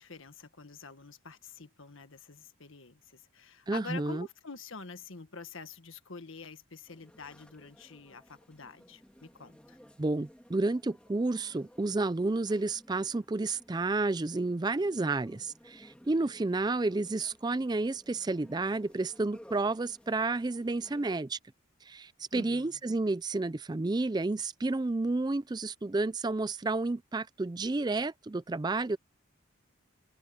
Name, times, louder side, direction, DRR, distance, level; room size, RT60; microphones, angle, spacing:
voice 1, 0.0-9.8 22.3-22.8, left 4 dB, 70° left, 1.6 m, -47 dB
voice 2, 3.7-4.3 10.0-21.4 21.8-29.0, right 3 dB, 20° right, 0.4 m, -31 dB
sound 1, 6.9-21.1, equal, 5° left, 2.8 m, -58 dB
open air
head